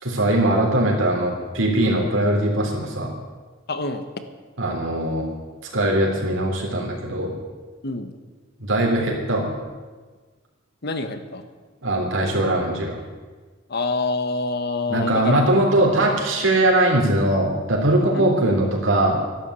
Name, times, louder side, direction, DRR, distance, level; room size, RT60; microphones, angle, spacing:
voice 1, 0.0-3.1 4.6-5.3 5.7-7.4 8.6-9.5 11.8-13.0 14.9-19.2, right 1 dB, 80° right, -1 dB, 3.8 m, -21 dB
voice 2, 3.7-4.0 7.8-8.1 10.8-11.5 13.7-15.4 18.1-18.2, left 3 dB, 55° left, 9 dB, 1.3 m, -26 dB
13.0 x 12.0 x 8.2 m, 1.4 s
head